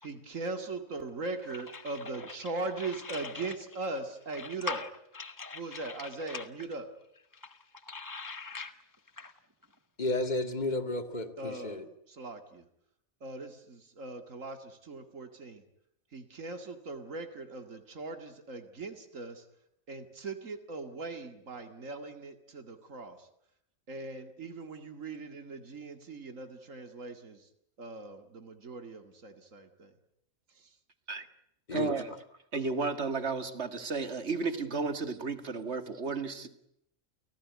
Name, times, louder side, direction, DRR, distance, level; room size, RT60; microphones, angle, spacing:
voice 1, 0.0-4.8 5.5-6.9 11.4-12.7 13.2-15.6 16.1-19.4 19.9-23.3 23.9-27.5 27.8-29.9 30.5-30.7, right 3 dB, 75° right, 2.6 m, -40 dB
voice 2, 3.1-3.5 4.7-4.9 5.2-5.9 6.3-6.4 7.9-8.7 9.2-9.3, left 4 dB, 15° right, 0.9 m, -39 dB
voice 3, 10.0-11.9 31.7-31.9, left 2 dB, 35° left, 2.0 m, -32 dB
voice 4, 31.7-32.1 32.5-36.6, right 4 dB, 55° right, 2.2 m, -33 dB
29.5 x 18.0 x 9.6 m
omnidirectional pair, 1.4 m